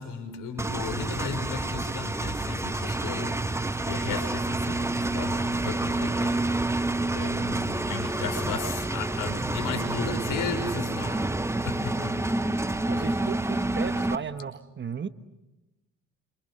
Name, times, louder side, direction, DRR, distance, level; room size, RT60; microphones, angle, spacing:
voice 1, 0.0-6.9 7.1-11.3 11.6-12.4 12.9-13.1, left 5 dB, 80° left, 5.4 m, -35 dB
Engine, 0.6-14.2, right 2 dB, 10° right, 1.1 m, -28 dB
voice 2, 12.9-15.1, right 6 dB, 35° right, 1.4 m, -35 dB
27.5 x 27.5 x 6.6 m
cardioid pair, 95°, 31 cm